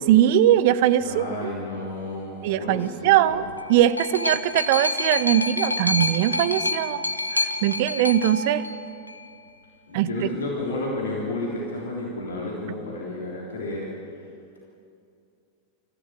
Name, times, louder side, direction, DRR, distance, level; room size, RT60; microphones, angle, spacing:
voice 1, 0.1-1.5 2.4-7.0 7.4-8.6 9.9-10.3, right 12 dB, 50° right, 16 dB, 0.7 m, -21 dB
voice 2, 1.0-3.4 9.9-13.9, left 2 dB, 70° left, -4 dB, 3.6 m, -31 dB
sound 1, 3.3-9.3 10.2-10.3, left 2 dB, 85° left, 0.8 m, -28 dB
24.5 x 15.0 x 7.3 m, 2.5 s
figure-of-eight pair, 90°, 0 cm